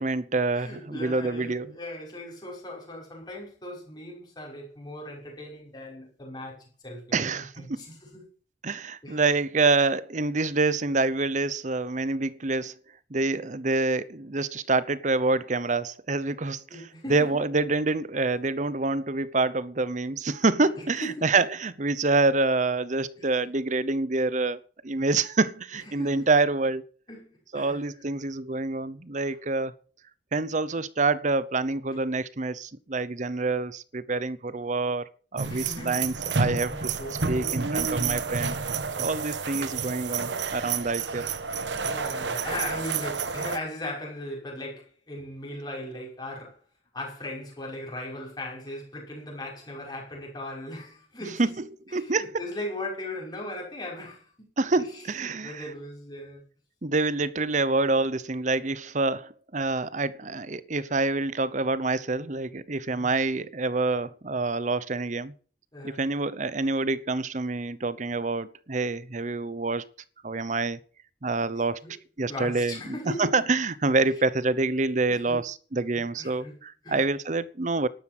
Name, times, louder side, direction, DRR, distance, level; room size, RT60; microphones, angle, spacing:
voice 1, 0.0-1.8 7.1-7.8 8.6-12.7 13.1-24.6 24.8-26.8 27.5-29.7 30.3-36.9 37.3-38.6 39.0-41.3 51.4-51.5 51.9-52.4 54.6-55.6 56.8-65.3 65.8-69.8 70.2-70.8 71.2-71.8 72.2-77.9, right 3 dB, 45° right, 0.8 m, -27 dB
voice 2, 0.5-8.2 9.0-9.2 16.7-17.3 20.7-21.3 23.2-23.3 25.9-26.3 27.1-27.8 29.2-29.3 35.5-37.6 39.0-39.2 41.8-46.6 46.9-51.5 52.0-54.5 54.8-56.4 62.9-63.1 65.7-66.0 71.8-71.9 72.3-73.3 75.1-75.4 76.2-76.6 76.8-77.1, left 1 dB, 25° left, 5.8 m, -38 dB
sound 1, 35.4-43.6, right 5 dB, 75° right, 1.3 m, -30 dB
12.0 x 11.5 x 6.1 m
head